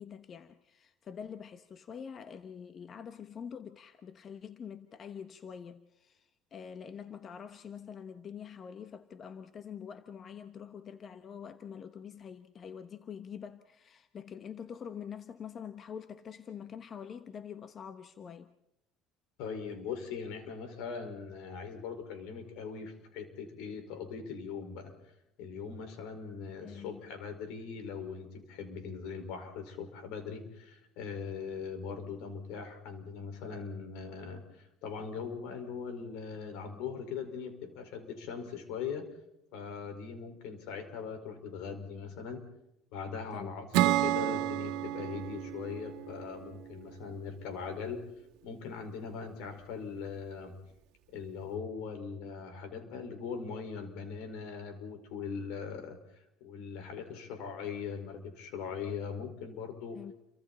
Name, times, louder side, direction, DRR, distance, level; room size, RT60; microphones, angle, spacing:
voice 1, 0.0-18.5 26.6-27.0 43.3-43.6 59.9-60.1, left 7 dB, 35° left, 1.1 m, -45 dB
voice 2, 19.4-24.9 25.4-39.1 39.5-42.4 42.9-48.0 48.4-50.5 51.1-56.0 56.4-60.0, left 6 dB, 80° left, 5.1 m, -40 dB
Acoustic guitar / Strum, 43.7-47.2, right 15 dB, 80° right, 1.5 m, -31 dB
29.5 x 24.5 x 4.3 m
cardioid pair, 125°, 0 cm